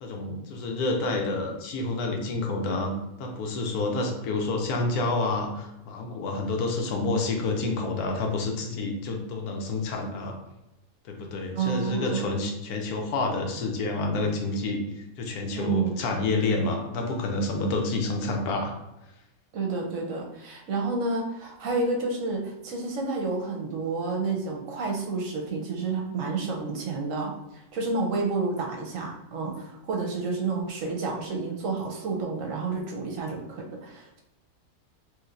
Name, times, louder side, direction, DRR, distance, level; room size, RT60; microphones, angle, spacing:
voice 1, 0.0-2.9 3.2-10.3 11.1-14.8 15.2-18.7, left 3 dB, 80° left, 2 dB, 1.1 m, -28 dB
voice 2, 11.5-12.3 15.6-16.0 19.5-34.2, right 3 dB, 65° right, 0 dB, 0.9 m, -30 dB
3.1 x 2.9 x 2.4 m, 0.94 s
omnidirectional pair, 1.6 m